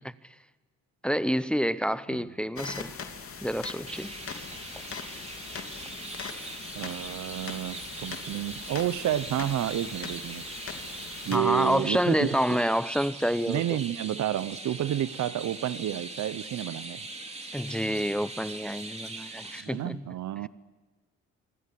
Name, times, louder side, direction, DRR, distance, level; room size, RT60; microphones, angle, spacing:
voice 1, 1.0-2.9 3.4-4.1 11.3-13.8 17.5-20.1, equal, 5° left, 15 dB, 0.8 m, -28 dB
sound 1, 2.6-11.4, left 5 dB, 45° left, 3.2 m, -41 dB
Chirp tweet, 3.9-19.6, right 2 dB, 20° right, 3.3 m, -41 dB
voice 2, 6.7-10.4 11.3-12.6 13.5-17.1 19.6-20.5, right 12 dB, 70° right, 17 dB, 1.0 m, -30 dB
26.5 x 24.0 x 8.6 m, 1.2 s
cardioid pair, 90°, 30 cm